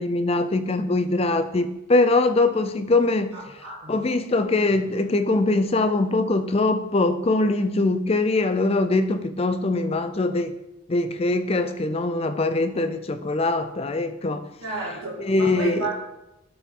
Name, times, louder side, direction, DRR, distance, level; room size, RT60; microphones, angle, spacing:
voice 1, 0.0-3.4 3.9-10.5 10.9-14.5 15.2-15.9, left 2 dB, 30° left, 9 dB, 0.5 m, -22 dB
voice 2, 3.3-4.0 14.6-16.0, right 3 dB, 85° right, -6 dB, 1.7 m, -32 dB
12.0 x 4.5 x 3.7 m, 0.93 s
head